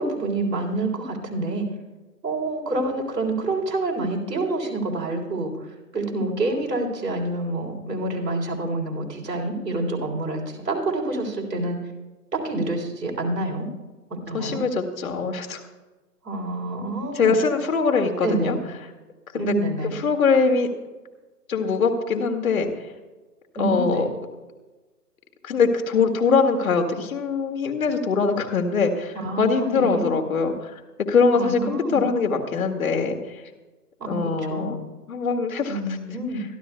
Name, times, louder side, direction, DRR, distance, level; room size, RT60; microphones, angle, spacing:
voice 1, 0.0-1.7 2.2-5.5 5.9-11.8 12.3-13.7 14.1-14.6 16.2-17.3 18.2-18.6 19.3-20.0 23.6-24.0 29.1-30.1 31.3-32.0 34.0-34.7 35.7-36.4, right 2 dB, 80° right, 0 dB, 3.6 m, -27 dB
voice 2, 14.3-15.6 17.1-18.6 19.3-19.5 19.9-20.7 21.5-22.7 23.6-24.1 25.4-30.8 31.1-33.4 34.1-34.8 35.1-35.8, left 5 dB, 60° left, 4 dB, 2.1 m, -22 dB
24.5 x 12.0 x 2.3 m, 1.2 s
figure-of-eight pair, 140°, 48 cm